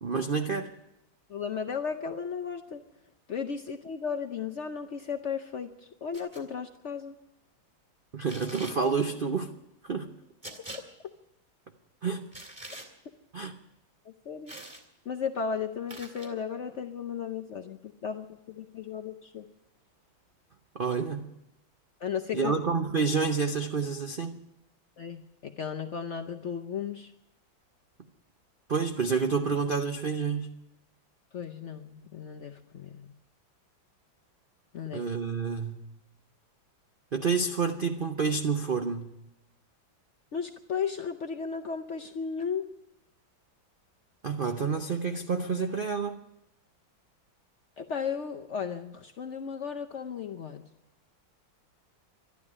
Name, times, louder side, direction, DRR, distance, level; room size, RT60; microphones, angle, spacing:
voice 1, 0.0-0.7 8.1-9.5 9.8-10.1 12.0-12.3 13.3-13.6 20.7-21.3 22.3-24.4 28.7-30.5 34.9-35.9 37.1-39.2 44.2-46.2, right 5 dB, 80° right, 6 dB, 0.4 m, -29 dB
voice 2, 1.3-2.8 3.3-5.7 6.0-7.1 10.7-10.8 14.1-14.5 15.1-19.4 22.0-22.5 25.0-27.1 31.3-33.1 34.7-35.0 40.3-42.7 47.8-50.6, left 6 dB, 75° left, 5 dB, 0.6 m, -35 dB
sound 1, 6.1-6.4 8.3-8.8 10.4-10.8 12.3-12.9 14.5-14.8 15.9-16.3, right 1 dB, 15° right, 2.2 m, -43 dB
12.0 x 11.5 x 9.8 m, 0.88 s
omnidirectional pair, 2.1 m